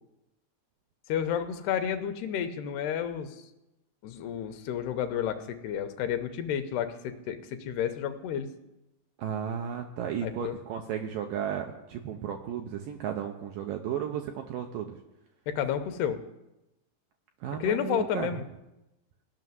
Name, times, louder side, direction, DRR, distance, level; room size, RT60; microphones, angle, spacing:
voice 1, 1.1-3.4 4.0-8.5 10.2-10.6 15.5-16.2 17.6-18.4, left 9 dB, 80° left, 8 dB, 2.9 m, -31 dB
voice 2, 9.2-15.0 17.4-18.3, right 9 dB, 80° right, 4 dB, 2.1 m, -34 dB
17.0 x 6.3 x 9.4 m, 0.94 s
omnidirectional pair, 4.8 m